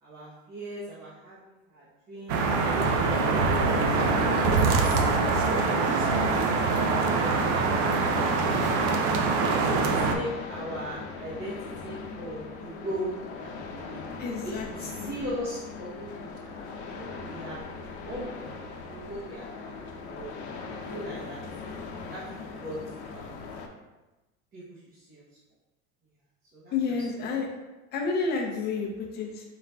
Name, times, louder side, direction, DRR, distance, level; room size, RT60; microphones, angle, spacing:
voice 1, 0.0-3.7 4.3-7.7 8.1-9.1 9.8-14.0 14.4-17.6 18.0-19.4 19.8-21.4 22.1-22.8 23.0-23.4 24.5-25.2 26.5-26.8, right 1 dB, 30° right, -9 dB, 0.9 m, -39 dB
sound 1, 2.3-10.2, right 4 dB, 55° right, 0.6 m, -24 dB
sound 2, 6.6-23.7, left 4 dB, 90° left, 0.7 m, -40 dB
voice 2, 14.2-14.7 15.0-15.1 26.7-27.5 27.9-29.4, left 4 dB, 30° left, 0 dB, 0.6 m, -30 dB
4.1 x 3.7 x 2.2 m, 1.1 s
supercardioid pair, 140°, 33 cm